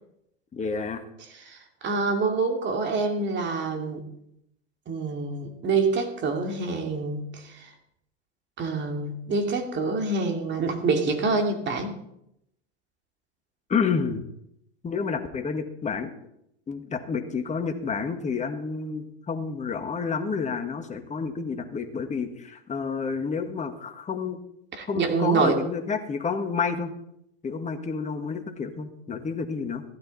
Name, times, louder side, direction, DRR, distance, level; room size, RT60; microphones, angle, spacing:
voice 1, 0.5-1.0 13.7-14.2 14.8-16.1 16.7-24.4 24.9-26.9 27.4-29.8, left 5 dB, 20° left, 5 dB, 1.7 m, -29 dB
voice 2, 1.4-4.0 4.9-7.7 8.6-11.9 24.8-25.6, right 4 dB, 30° right, 4 dB, 2.6 m, -26 dB
15.5 x 12.5 x 4.2 m, 0.78 s
hypercardioid pair, 105°, 35 cm